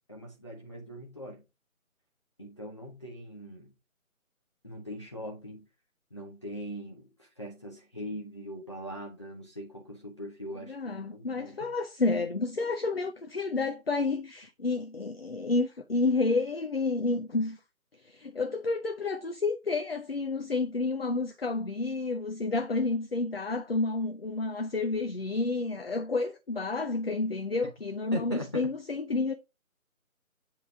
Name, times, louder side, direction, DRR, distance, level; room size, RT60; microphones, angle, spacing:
voice 1, 0.1-1.4 2.4-3.7 4.6-5.6 6.1-11.7 28.1-28.7, equal, 20° left, 0.8 m, -41 dB
voice 2, 10.7-17.6 18.0-29.3, left 3 dB, 45° left, 0.6 m, -30 dB
7.9 x 3.4 x 4.7 m
figure-of-eight pair, 160°, 43 cm